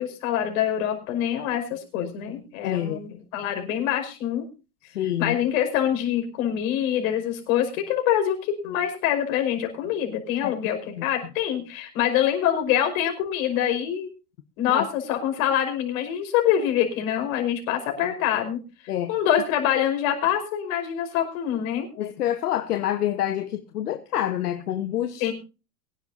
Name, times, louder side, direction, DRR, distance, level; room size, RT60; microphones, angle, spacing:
voice 1, 0.0-4.4 5.2-14.1 14.6-18.6 19.1-21.9 25.2-25.3, left 10 dB, 60° left, 5.5 m, -25 dB
voice 2, 2.6-3.0 4.9-5.4 10.4-10.5 11.0-11.1 14.7-14.9 18.9-19.2 22.0-25.3, left 11 dB, 80° left, 1.2 m, -27 dB
23.5 x 10.5 x 2.7 m
hypercardioid pair, 100°, 45 cm